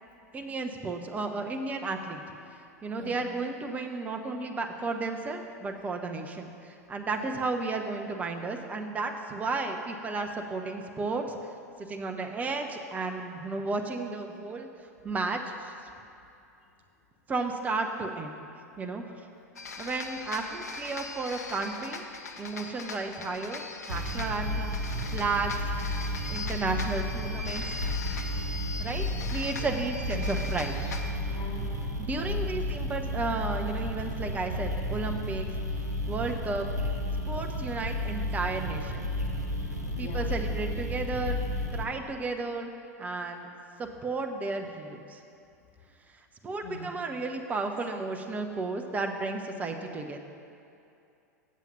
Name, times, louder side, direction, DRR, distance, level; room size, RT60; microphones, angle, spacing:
voice 1, 0.3-2.2 2.8-11.4 11.9-14.7 15.0-15.7 17.3-18.3 18.8-19.0 19.8-22.1 22.4-23.6 23.9-24.8 25.1-25.6 26.3-27.8 28.8-30.7 32.0-35.5 36.1-36.7 37.3-38.9 40.0-41.4 41.7-42.7 43.0-43.5 43.8-45.2 46.4-50.2, right 3 dB, 15° right, 4 dB, 0.7 m, -33 dB
voice 2, 2.9-3.2 7.0-7.3 19.4-19.5 29.2-29.7 31.2-31.7 32.2-32.4 39.9-40.3 46.6-46.9, left 4 dB, 45° left, 0 dB, 1.4 m, -44 dB
sound 1, 19.6-31.1, left 3 dB, 70° left, 0.7 m, -40 dB
sound 2, 23.9-41.8, left 1 dB, 90° right, 1.0 m, -32 dB
7.3 x 7.3 x 5.5 m, 2.6 s
figure-of-eight pair, 90°, 9 cm